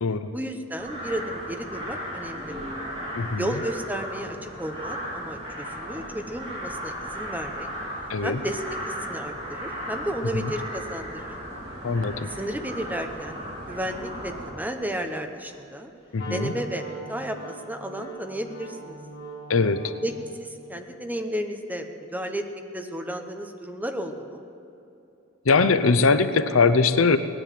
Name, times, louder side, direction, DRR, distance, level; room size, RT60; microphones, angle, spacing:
voice 1, 0.3-2.6 3.4-7.7 8.2-11.3 12.3-15.9 16.3-19.0 20.0-20.1 20.4-24.4, right 1 dB, 10° right, 5 dB, 1.0 m, -33 dB
sound 1, 0.8-14.5, equal, 30° right, 5.0 m, -36 dB
voice 2, 3.1-3.5 8.1-8.4 10.3-10.5 11.8-12.3 16.1-16.5 19.5-19.9 25.5-27.2, left 4 dB, 75° left, 11 dB, 0.7 m, -21 dB
Wind instrument woodwind instrument, 16.2-20.2, right 2 dB, 50° left, 3.6 m, -40 dB
18.0 x 10.5 x 7.6 m, 2.8 s
head